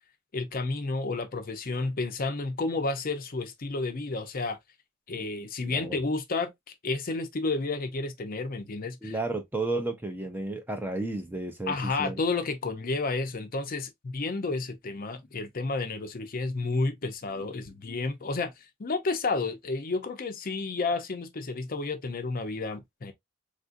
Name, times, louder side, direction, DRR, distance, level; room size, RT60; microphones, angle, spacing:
voice 1, 0.3-4.6 5.1-6.5 6.8-9.2 11.7-23.1, left 3 dB, 40° left, 0.5 m, -31 dB
voice 2, 5.7-6.0 9.0-12.2, right 2 dB, 10° right, 0.4 m, -33 dB
3.6 x 2.5 x 2.4 m
head